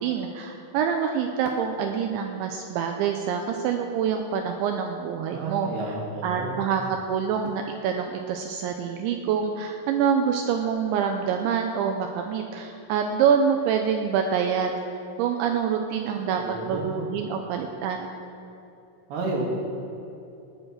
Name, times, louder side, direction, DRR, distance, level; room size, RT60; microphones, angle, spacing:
voice 1, 0.0-5.9 6.2-14.8 15.2-16.4 16.7-18.1, right 7 dB, 80° right, 4 dB, 2.9 m, -26 dB
voice 2, 5.3-6.5 16.2-16.9 17.3-17.4 19.1-19.4, right 3 dB, 60° right, -1 dB, 3.6 m, -31 dB
19.0 x 8.0 x 6.3 m, 2.8 s
omnidirectional pair, 5.6 m